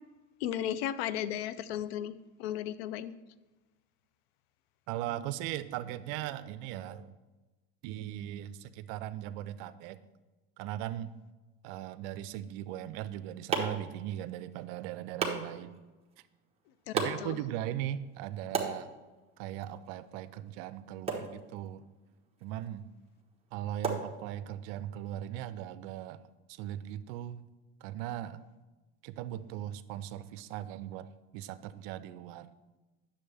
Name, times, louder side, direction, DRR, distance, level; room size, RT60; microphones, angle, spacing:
voice 1, 0.4-3.1 16.9-17.4, left 11 dB, 80° left, 16 dB, 0.5 m, -35 dB
voice 2, 4.9-7.1 7.8-10.0 10.6-11.1 11.6-15.8 16.9-18.9 19.4-21.8 22.4-22.8 23.5-26.2 26.5-27.4 27.8-28.4 29.0-32.5, right 12 dB, 70° right, 14 dB, 0.6 m, -39 dB
sound 1, 12.8-24.8, right 4 dB, 20° right, 1.2 m, -40 dB
9.2 x 7.1 x 3.4 m, 1.2 s
supercardioid pair, 120°, 31 cm